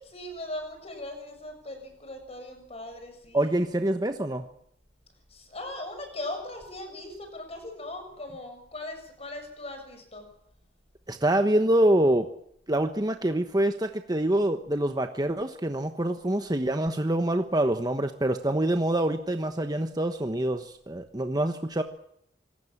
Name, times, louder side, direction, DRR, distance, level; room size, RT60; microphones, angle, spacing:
voice 1, 0.0-3.5 5.3-10.3, left 1 dB, 35° left, 6 dB, 7.1 m, -39 dB
voice 2, 3.3-4.4 11.1-12.3 12.7-21.8, right 1 dB, 25° right, 7 dB, 1.1 m, -25 dB
26.5 x 19.0 x 7.3 m, 0.71 s
head